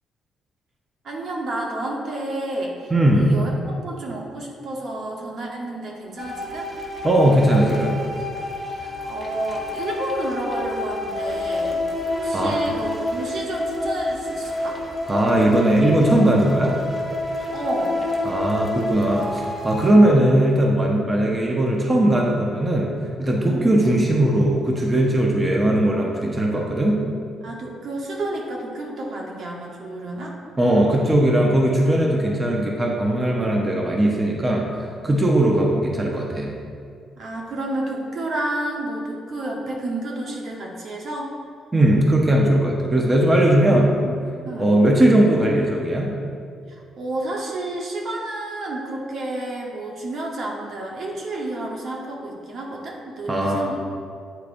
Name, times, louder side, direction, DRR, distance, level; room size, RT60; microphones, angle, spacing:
voice 1, 1.0-6.7 8.7-11.8 12.1-14.8 17.4-18.0 23.5-23.7 27.4-30.4 35.4-35.6 37.2-41.3 43.7-44.2 44.5-44.7 46.7-53.8, right 2 dB, 60° right, -1 dB, 1.0 m, -30 dB
voice 2, 2.9-3.3 7.0-8.0 12.3-12.6 15.1-16.7 18.2-22.9 23.2-27.0 30.6-36.5 41.7-43.9 44.6-46.1 53.3-53.7, right 1 dB, 25° right, -1 dB, 0.8 m, -19 dB
sound 1, 6.2-19.9, left 1 dB, ahead, 1.1 m, -28 dB
8.4 x 4.6 x 2.6 m, 2.2 s
cardioid pair, 90°, 0 cm